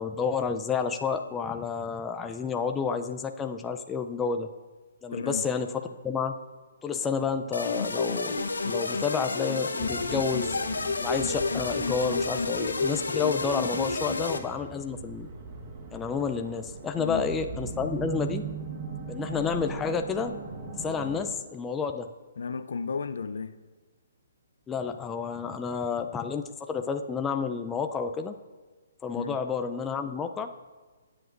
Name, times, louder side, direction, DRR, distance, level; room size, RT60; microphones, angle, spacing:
voice 1, 0.0-4.5 5.0-5.7 6.0-6.4 6.8-10.6 11.0-15.3 15.9-18.4 19.1-20.4 20.8-22.1 24.7-28.4 29.0-30.5, left 5 dB, 15° left, 0.5 m, -30 dB
voice 2, 5.1-5.4 17.0-17.3 22.4-23.6 29.1-29.4, left 5 dB, 75° left, 0.5 m, -33 dB
sound 1, 7.5-14.4, left 3 dB, 90° left, 0.9 m, -30 dB
sound 2, 9.8-21.3, right 4 dB, 35° right, 1.6 m, -40 dB
16.5 x 8.0 x 2.6 m
hypercardioid pair, 145°, 0 cm